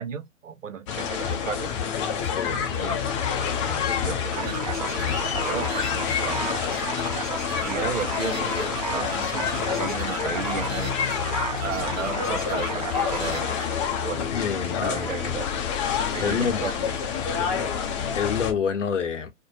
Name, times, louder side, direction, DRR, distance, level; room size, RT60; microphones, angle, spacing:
voice 1, 0.0-1.7 2.7-3.1 3.7-6.7 7.6-11.0 11.6-13.6 14.0-15.5 16.1-17.0, right 6 dB, 85° right, 0.6 m, -35 dB
sound 1, 0.9-18.5, left 7 dB, 25° left, 0.5 m, -28 dB
voice 2, 2.2-2.7 14.3-15.1 16.2-16.7 18.1-19.3, left 7 dB, 70° left, 0.8 m, -27 dB
sound 2, 4.3-14.1, right 7 dB, 30° right, 0.4 m, -34 dB
2.6 x 2.1 x 2.6 m
figure-of-eight pair, 120°, 37 cm